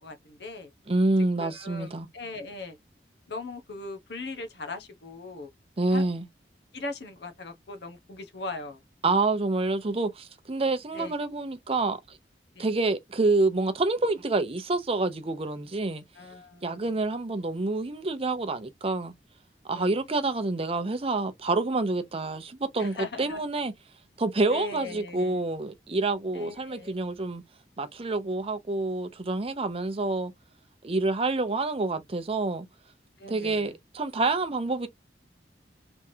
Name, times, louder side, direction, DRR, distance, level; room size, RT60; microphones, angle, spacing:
voice 1, 0.0-0.7 1.4-2.8 3.3-5.5 5.9-6.0 6.7-8.8 10.9-11.1 12.6-12.7 16.1-16.8 19.7-19.9 22.8-23.4 24.5-25.4 26.3-27.0 33.2-33.7, left 3 dB, 70° left, 0.9 m, -39 dB
voice 2, 0.9-2.1 5.8-6.3 9.0-12.2 12.6-16.0 16.6-19.1 19.7-23.7 24.2-27.4 27.8-30.3 30.8-32.7 33.3-34.9, right 3 dB, 35° right, 0.7 m, -27 dB
3.4 x 3.1 x 2.7 m
head